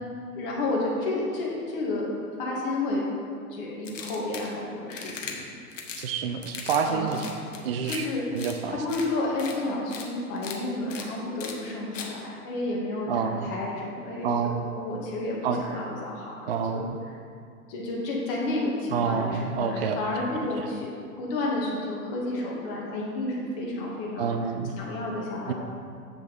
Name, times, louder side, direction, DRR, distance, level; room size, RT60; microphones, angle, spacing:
voice 1, 0.4-2.1 2.4-3.0 3.5-5.4 6.8-7.2 7.8-8.2 8.7-14.5 14.7-16.3 16.7-16.8 17.7-24.3 24.8-25.5, left 2 dB, 35° left, -4 dB, 2.2 m, -31 dB
sound 1, 3.8-4.5 4.9-5.3 5.7-6.1 6.4-6.8 7.1-8.0 8.4-8.5 8.9-9.1 9.4-9.5 9.9-10.1 10.4-10.6 10.9-11.0 11.4-11.5 11.9-12.1, left 6 dB, 50° left, 1.3 m, -38 dB
voice 2, 6.0-7.3 7.6-8.1 8.3-8.8 13.1-13.5 14.2-14.7 15.4-15.6 16.5-17.0 18.9-20.0 20.6-20.7 24.2-24.7 25.5-25.6, right 6 dB, 40° right, 6 dB, 0.6 m, -28 dB
7.8 x 6.9 x 5.2 m, 2.3 s
figure-of-eight pair, 115°, 46 cm